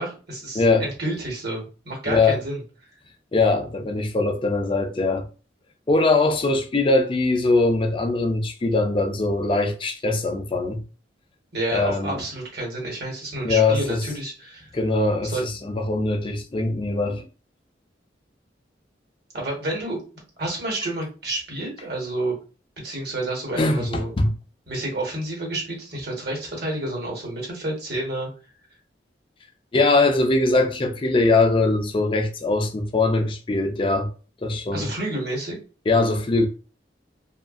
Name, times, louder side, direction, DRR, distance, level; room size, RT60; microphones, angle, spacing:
voice 1, 0.0-2.6 11.5-14.7 15.2-15.4 19.3-20.0 20.4-22.4 22.8-24.1 24.7-28.3 34.7-35.6, right 1 dB, 60° right, 1.2 m, -29 dB
voice 2, 0.5-0.9 2.1-2.4 3.3-5.2 5.9-10.8 11.7-12.2 13.4-14.0 14.7-17.3 23.6-24.3 29.7-34.1 34.4-34.9 35.9-36.5, left 3 dB, 30° left, 0.4 m, -21 dB
2.7 x 2.5 x 2.4 m
head